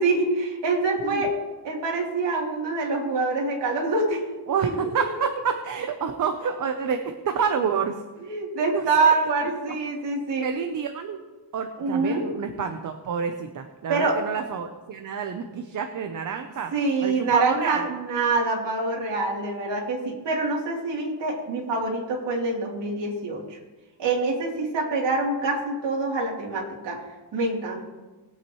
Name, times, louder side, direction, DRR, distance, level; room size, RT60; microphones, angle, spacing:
voice 1, 0.0-1.3 1.6-4.2 4.6-4.7 7.3-7.4 8.2-10.5 11.8-12.3 13.9-14.2 16.7-23.6 24.0-27.0 27.3-27.9, right 3 dB, 70° right, -2 dB, 3.3 m, -25 dB
voice 2, 4.5-8.0 8.7-9.1 10.4-11.2 11.5-16.7 17.0-17.8, right 6 dB, 45° right, 6 dB, 0.8 m, -28 dB
20.0 x 8.7 x 3.1 m, 1.2 s
wide cardioid pair, 175°, 43 cm